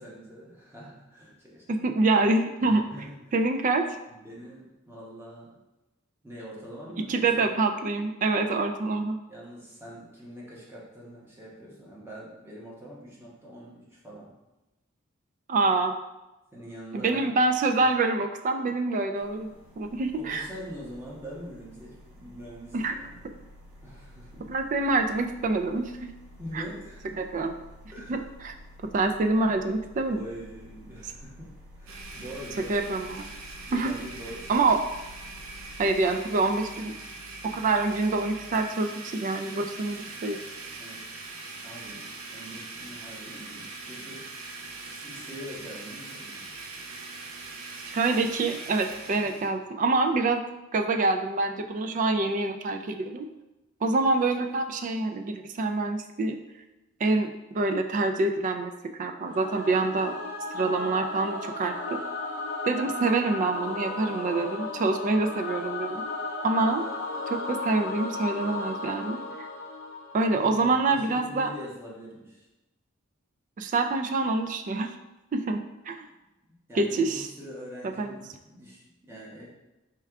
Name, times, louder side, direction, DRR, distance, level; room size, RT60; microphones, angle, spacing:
voice 1, 0.0-1.7 2.6-3.4 4.1-5.5 6.2-7.5 9.3-14.3 16.5-17.3 17.8-17.9 20.2-23.3 23.8-24.5 26.4-27.2 27.9-28.2 30.0-31.5 31.8-32.8 33.7-34.7 40.8-41.0 41.6-44.2 44.8-46.6 70.3-72.5 76.5-79.6, equal, 10° right, -6 dB, 1.0 m, -44 dB
voice 2, 1.7-2.8 3.3-3.8 7.1-9.2 15.5-16.0 16.9-19.5 19.8-20.5 22.7-23.0 24.5-26.1 26.5-26.6 27.2-27.5 28.1-28.5 28.9-30.2 32.7-33.3 33.7-33.9 34.5-34.8 35.8-36.9 37.5-40.4 47.9-50.4 50.7-53.3 53.8-56.4 57.0-58.7 59.0-60.1 60.5-62.0 62.6-66.0 66.4-66.9 67.3-69.5 70.1-71.5 73.6-74.9 75.3-75.6 75.9-76.1 76.8-77.2 78.0-78.1, right 3 dB, 40° right, 5 dB, 0.3 m, -26 dB
sound 1, 19.1-36.1, equal, 65° right, 1.0 m, -51 dB
Domestic sounds home sounds, 31.9-49.5, right 3 dB, 80° right, 0.6 m, -42 dB
Singing / Musical instrument, 59.3-70.6, left 2 dB, 65° left, 0.6 m, -35 dB
4.4 x 2.3 x 3.4 m, 1.0 s
head